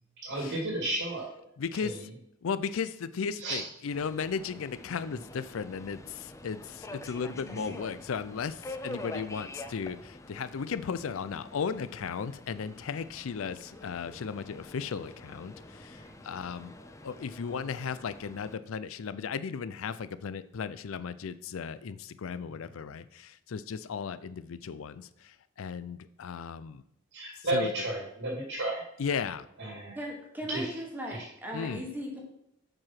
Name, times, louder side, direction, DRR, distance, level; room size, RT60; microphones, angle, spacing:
voice 1, 0.2-1.3 1.7-2.1 3.4-3.6 7.5-7.8 16.0-16.1 22.5-22.6 27.1-28.8 29.6-30.0 30.5-30.7 31.1-31.3, right 1 dB, 70° right, -1 dB, 2.1 m, -33 dB
voice 2, 1.6-2.0 2.4-16.7 17.0-26.8 27.5-27.7 29.0-29.5 31.5-31.8, left 6 dB, 65° left, 14 dB, 0.4 m, -36 dB
Subway metro underground, 3.9-18.5, left 2 dB, 15° left, 0.5 m, -46 dB
voice 3, 30.0-32.2, equal, 10° right, 0 dB, 1.3 m, -38 dB
7.6 x 4.8 x 5.8 m, 0.79 s
head